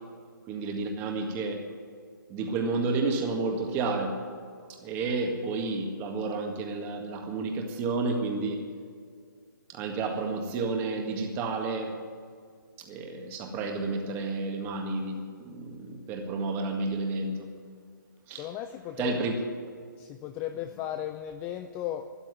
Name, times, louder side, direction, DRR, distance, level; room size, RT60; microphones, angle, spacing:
voice 1, 0.5-1.6 2.3-4.1 4.8-8.6 9.7-12.0 12.9-17.5 18.3-18.5 19.0-19.3, right 3 dB, 20° right, 3 dB, 1.8 m, -31 dB
voice 2, 18.4-19.2 20.0-22.1, left 11 dB, 15° left, 8 dB, 0.4 m, -35 dB
13.0 x 11.0 x 9.6 m, 2.1 s
figure-of-eight pair, 150°, 11 cm